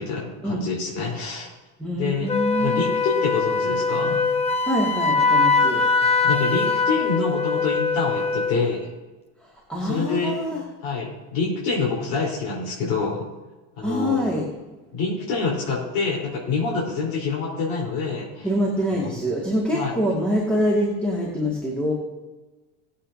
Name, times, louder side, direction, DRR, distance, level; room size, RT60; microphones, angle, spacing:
voice 1, 0.0-1.5 2.0-2.3 2.6-4.2 6.0-8.9 9.8-10.3 10.8-13.3 13.8-14.2 14.9-18.5 19.0-19.1 19.7-19.9, left 4 dB, 75° left, -4 dB, 4.3 m, -26 dB
voice 2, 1.8-2.9 4.7-5.8 9.7-10.6 13.8-14.4 18.4-21.9, equal, 5° left, -4 dB, 2.4 m, -25 dB
Wind instrument woodwind instrument, 2.3-8.6, left 4 dB, 20° left, 0.9 m, -22 dB
20.0 x 8.6 x 2.8 m, 1.2 s
supercardioid pair, 125°, 32 cm